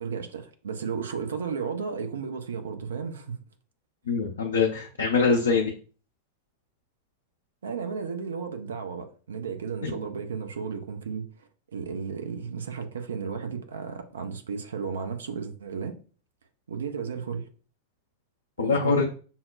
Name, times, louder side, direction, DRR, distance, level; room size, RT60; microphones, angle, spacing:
voice 1, 0.0-3.4 7.6-15.9 16.7-17.4 18.6-19.0, right 6 dB, 65° right, 0.5 m, -34 dB
voice 2, 4.1-5.7 9.8-10.0 18.6-19.0, left 4 dB, 65° left, 0.5 m, -24 dB
5.4 x 2.1 x 2.4 m
figure-of-eight pair, 90°, 0 cm